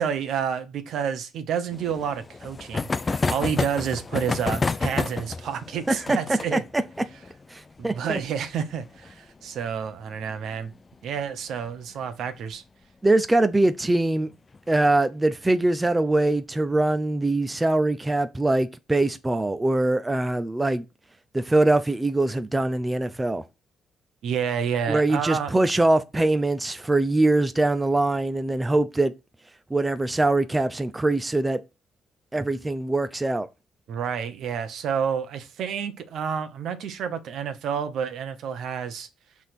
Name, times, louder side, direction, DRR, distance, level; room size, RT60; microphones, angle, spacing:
voice 1, 0.0-6.6 7.8-10.7 11.0-12.6 24.2-25.5 33.9-39.1, right 7 dB, 75° right, 1.1 m, -29 dB
sound 1, 1.7-10.9 11.2-11.3 11.5-11.6 11.9-12.0 13.4-13.7 14.3-14.8, left 4 dB, 30° left, 0.4 m, -30 dB
voice 2, 5.9-6.2 6.5-6.8 7.5-8.2 13.0-14.3 14.7-20.8 21.3-23.4 24.9-29.1 29.7-31.6 32.3-33.5, right 2 dB, 15° right, 0.6 m, -23 dB
6.2 x 3.6 x 6.0 m
cardioid pair, 90°, 0 cm